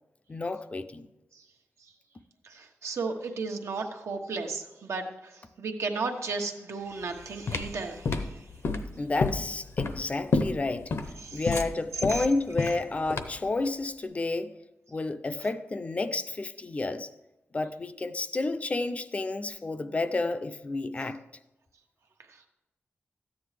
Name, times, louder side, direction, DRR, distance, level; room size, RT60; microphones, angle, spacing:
voice 1, 0.3-1.1 9.0-10.9 11.3-14.5 14.9-17.1 17.5-21.2, left 3 dB, 30° left, 0.4 m, -30 dB
voice 2, 2.4-8.4 11.2-11.5 12.1-12.3 12.6-12.7, right 4 dB, 85° right, 1.1 m, -34 dB
sound 1, 7.0-13.5, left 3 dB, 65° left, 0.7 m, -30 dB
13.5 x 9.3 x 3.3 m
wide cardioid pair, 165°, 5 cm